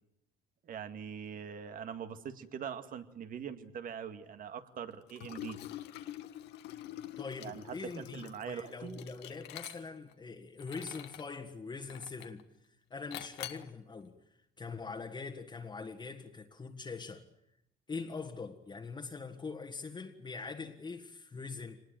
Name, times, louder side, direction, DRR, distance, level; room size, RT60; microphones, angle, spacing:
voice 1, 0.6-5.6 7.4-9.0, right 7 dB, 55° right, 2.1 m, -43 dB
Liquid, 5.1-10.1 10.6-11.3 11.9-12.4 13.1-13.7, left 13 dB, 80° left, 1.6 m, -46 dB
voice 2, 7.2-12.4 12.9-14.2 14.6-17.2 17.9-21.8, left 4 dB, 25° left, 1.8 m, -43 dB
24.5 x 20.0 x 9.1 m
cardioid pair, 110°, 17 cm